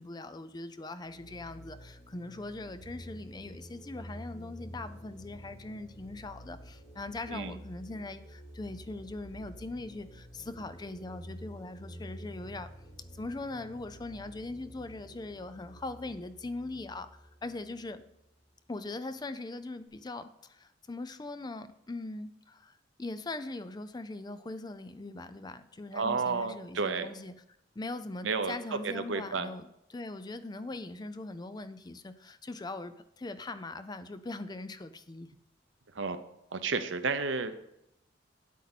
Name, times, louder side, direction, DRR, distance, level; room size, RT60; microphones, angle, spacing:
voice 1, 0.0-12.7 13.1-18.0 18.7-27.3 27.8-35.3, left 2 dB, 20° left, 12 dB, 0.4 m, -41 dB
sound 1, 1.0-18.4, equal, 40° left, 2.4 m, -49 dB
voice 2, 25.9-27.1 28.2-29.5 35.9-36.2 36.5-37.6, right 4 dB, 80° right, 9 dB, 0.9 m, -31 dB
9.9 x 8.3 x 4.2 m, 0.80 s
head